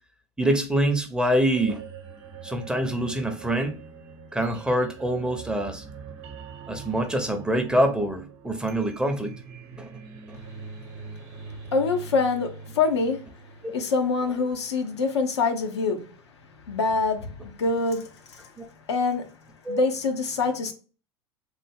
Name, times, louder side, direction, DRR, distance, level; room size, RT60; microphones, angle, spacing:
voice 1, 0.4-1.8 2.4-3.8 4.3-5.8 6.7-9.3 9.8-9.9 10.3-10.4 13.6-13.7 18.6-18.7 19.7-19.8, right 1 dB, 5° right, 0.6 m, -25 dB
sound 1, 1.5-14.5, right 5 dB, 50° right, 0.8 m, -43 dB
voice 2, 10.9-11.4 11.7-13.3 13.7-16.2 16.7-18.5 18.9-19.3 19.7-20.7, left 4 dB, 75° left, 0.6 m, -25 dB
3.4 x 2.1 x 3.4 m
figure-of-eight pair, 75°, 14 cm